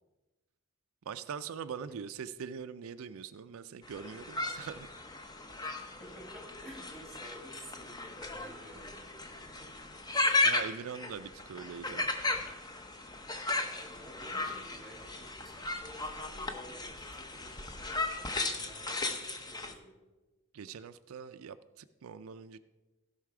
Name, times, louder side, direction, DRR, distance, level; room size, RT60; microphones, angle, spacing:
voice 1, 1.1-4.9 10.4-12.1 20.5-22.6, right 6 dB, 70° right, 11 dB, 0.4 m, -42 dB
sound 1, 3.9-19.7, left 2 dB, 20° left, 0.7 m, -35 dB
voice 2, 5.9-9.7 13.7-20.0, equal, ahead, 1 dB, 2.0 m, -52 dB
16.0 x 5.7 x 4.8 m, 1.1 s
head